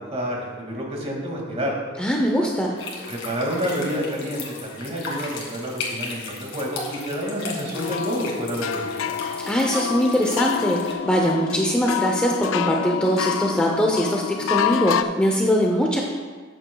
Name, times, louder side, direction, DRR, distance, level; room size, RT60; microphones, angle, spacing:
voice 1, 0.0-1.7 3.1-9.2, equal, 30° right, -1 dB, 2.0 m, -29 dB
voice 2, 2.0-2.8 9.4-16.0, equal, 5° left, -1 dB, 0.6 m, -22 dB
sound 1, 2.8-10.9, left 3 dB, 65° left, 2.1 m, -36 dB
sound 2, 7.7-15.0, left 8 dB, 85° left, 0.4 m, -27 dB
13.0 x 9.1 x 2.3 m, 1.5 s
head